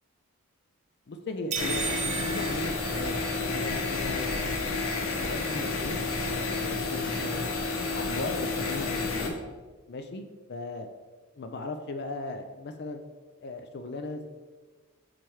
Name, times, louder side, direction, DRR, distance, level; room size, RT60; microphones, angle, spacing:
voice 1, 1.1-4.4 4.7-7.6 7.9-9.3 9.9-10.9 11.4-13.0 13.4-14.3, left 2 dB, 50° left, 7 dB, 0.4 m, -38 dB
sound 1, 1.5-9.3, left 3 dB, 65° left, 1.0 m, -30 dB
sound 2, 1.5-3.7, right 7 dB, 30° right, 0.5 m, -35 dB
7.9 x 3.1 x 4.7 m, 1.3 s
head